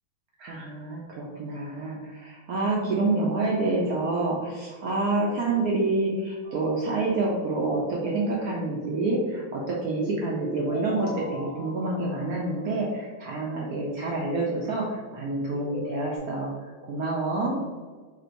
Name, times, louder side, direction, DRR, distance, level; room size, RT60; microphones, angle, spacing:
voice 1, 0.4-16.5 16.8-17.6, right 2 dB, 85° right, -3 dB, 0.8 m, -27 dB
sound 1, 6.4-7.5 9.8-13.1 15.4-16.2, right 1 dB, 30° right, 0.8 m, -39 dB
3.3 x 2.6 x 4.4 m, 1.4 s
omnidirectional pair, 2.2 m